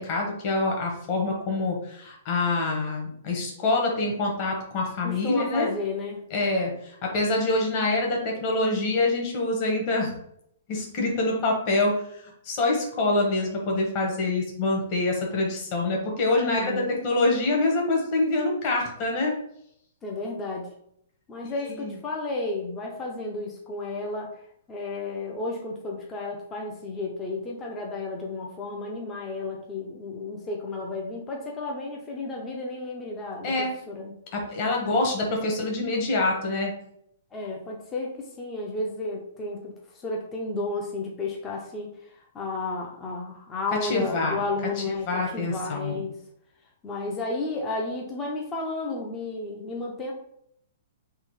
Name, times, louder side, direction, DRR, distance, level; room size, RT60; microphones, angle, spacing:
voice 1, 0.0-5.7 6.3-10.1 10.7-19.3 21.7-21.9 33.4-33.7 34.3-36.7 43.8-44.4 45.1-46.0, left 2 dB, 30° left, 0 dB, 1.1 m, -26 dB
voice 2, 5.0-6.2 16.4-17.0 20.0-20.7 21.3-34.2 37.3-46.2 46.8-50.1, left 3 dB, 15° left, -1 dB, 0.5 m, -32 dB
3.7 x 3.0 x 4.7 m, 0.71 s
hypercardioid pair, 170°, 0 cm